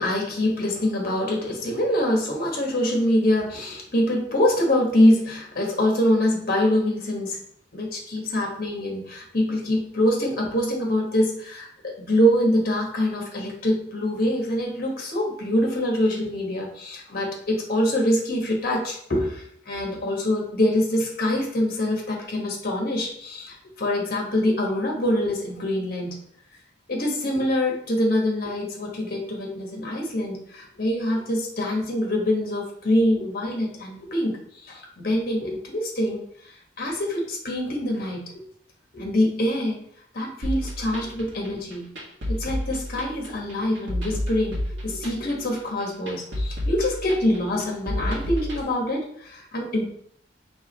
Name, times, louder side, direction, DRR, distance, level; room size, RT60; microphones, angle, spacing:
voice 1, 0.0-7.4 7.7-26.1 26.9-34.4 34.6-36.2 36.8-38.4 38.9-39.8 40.1-41.9 42.3-44.6 44.8-49.8, left 1 dB, 55° left, -1 dB, 1.3 m, -24 dB
sound 1, 40.4-48.6, left 1 dB, 85° right, 1.4 m, -30 dB
4.7 x 3.3 x 3.3 m, 0.66 s
head